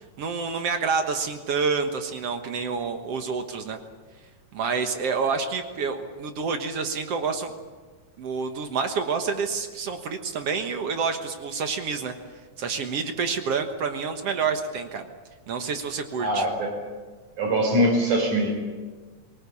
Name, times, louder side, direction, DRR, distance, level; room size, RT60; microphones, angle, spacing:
voice 1, 0.2-3.8 4.5-7.5 8.2-12.1 12.6-15.1 15.5-16.5, right 5 dB, 60° right, 6 dB, 2.2 m, -28 dB
voice 2, 16.2-16.8 17.4-18.6, equal, 90° right, 2 dB, 6.3 m, -23 dB
23.5 x 19.0 x 8.7 m, 1.4 s
omnidirectional pair, 3.5 m